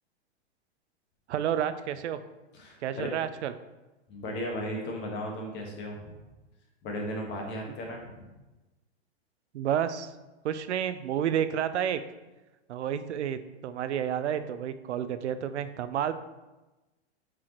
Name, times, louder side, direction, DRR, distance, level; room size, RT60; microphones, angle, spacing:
voice 1, 1.3-2.2 2.8-3.5 9.5-10.1 10.4-12.0 12.7-16.1, right 9 dB, 85° right, 12 dB, 0.6 m, -30 dB
voice 2, 2.5-3.1 4.1-6.2 6.8-8.3, equal, 30° left, 1 dB, 1.5 m, -36 dB
7.6 x 4.8 x 3.0 m, 1.1 s
hypercardioid pair, 125°, 33 cm